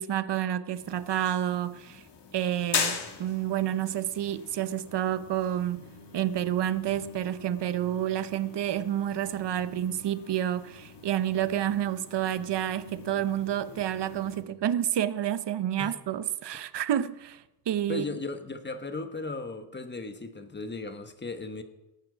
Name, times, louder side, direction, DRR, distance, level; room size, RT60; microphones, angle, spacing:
voice 1, 0.0-2.0 2.3-5.8 6.1-18.0, right 11 dB, 80° right, 0.7 m, -29 dB
sound 1, 0.7-14.4, left 5 dB, 80° left, 2.1 m, -40 dB
voice 2, 17.9-21.6, left 3 dB, 25° left, 1.2 m, -36 dB
17.5 x 8.9 x 6.1 m
wide cardioid pair, 160°, 41 cm